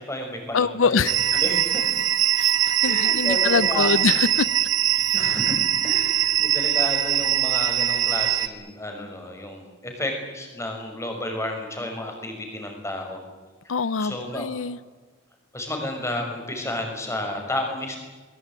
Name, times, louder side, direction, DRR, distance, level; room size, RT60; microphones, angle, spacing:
voice 1, 0.0-1.9 2.8-4.1 5.1-5.5 5.8-13.2 13.6-14.5 15.5-18.0, left 1 dB, 15° left, 3 dB, 5.8 m, -32 dB
voice 2, 0.5-1.1 2.4-4.5 13.7-14.8, left 5 dB, 85° left, 18 dB, 0.7 m, -24 dB
sound 1, 1.1-8.5, right 11 dB, 80° right, 1.3 m, -22 dB
22.5 x 20.5 x 9.0 m, 1.3 s
head